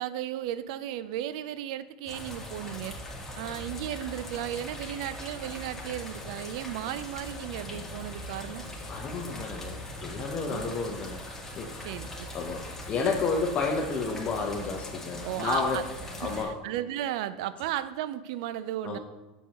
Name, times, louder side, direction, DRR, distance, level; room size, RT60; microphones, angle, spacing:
voice 1, 0.0-3.0 3.4-8.7 10.5-10.7 11.8-12.3 15.2-15.8 16.2-19.0, right 12 dB, 70° right, 14 dB, 0.4 m, -35 dB
sound 1, 2.1-16.4, left 1 dB, 10° left, 1.9 m, -40 dB
voice 2, 8.9-11.2 11.6-11.9 12.3-15.8 16.2-16.5 18.8-19.0, left 4 dB, 40° left, 0 dB, 0.8 m, -31 dB
8.2 x 7.2 x 3.0 m, 1.1 s
supercardioid pair, 105°, 4 cm